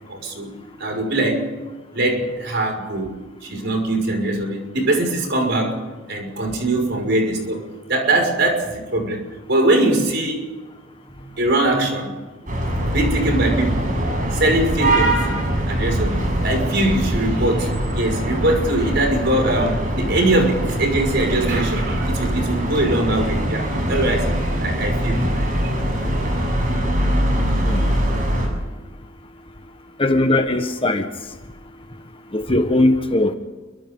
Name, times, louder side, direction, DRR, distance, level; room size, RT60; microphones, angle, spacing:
voice 1, 0.1-0.5 0.8-1.5 1.9-3.1 3.4-5.8 6.1-7.6 7.9-10.4 11.1-12.1 12.8-13.9 14.3-25.7, right 1 dB, 55° right, 6.0 m, -22 dB
sound 1, 12.5-28.5, right 1 dB, 40° right, 7.0 m, -22 dB
voice 2, 30.0-31.0 32.3-33.3, left 2 dB, 25° left, 1.5 m, -19 dB
30.0 x 24.5 x 3.9 m
head